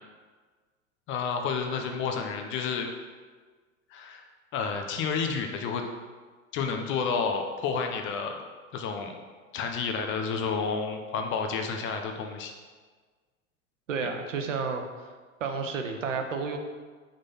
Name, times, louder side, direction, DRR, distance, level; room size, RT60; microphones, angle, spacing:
voice 1, 1.1-2.9 3.9-4.3 4.5-5.8 6.5-8.4 8.7-9.1 9.5-12.5, left 5 dB, 30° left, 4 dB, 0.8 m, -30 dB
voice 2, 13.9-14.8 15.4-16.6, right 5 dB, 70° right, 5 dB, 1.0 m, -31 dB
6.4 x 4.1 x 5.5 m, 1.4 s
figure-of-eight pair, 90°, 40 cm